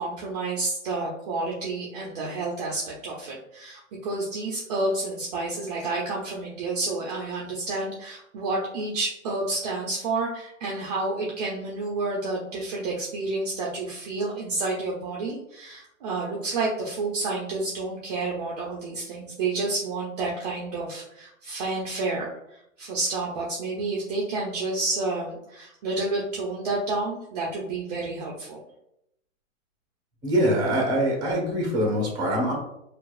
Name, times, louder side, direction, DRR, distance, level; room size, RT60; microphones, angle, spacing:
voice 1, 0.0-28.6, right 3 dB, 30° right, -2 dB, 0.5 m, -30 dB
voice 2, 30.2-32.5, equal, 10° right, 0 dB, 0.8 m, -24 dB
4.5 x 2.4 x 2.4 m, 0.80 s
hypercardioid pair, 145°, 39 cm